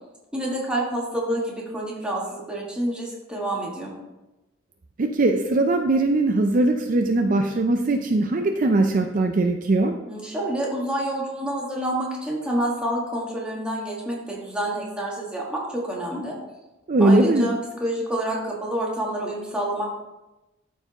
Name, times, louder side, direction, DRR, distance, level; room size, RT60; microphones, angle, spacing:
voice 1, 0.3-3.9 10.1-16.4 17.0-19.9, right 1 dB, 5° right, -4 dB, 1.6 m, -28 dB
voice 2, 5.0-9.9 16.9-17.5, right 2 dB, 45° right, 4 dB, 0.4 m, -20 dB
13.0 x 4.6 x 2.9 m, 1.0 s
head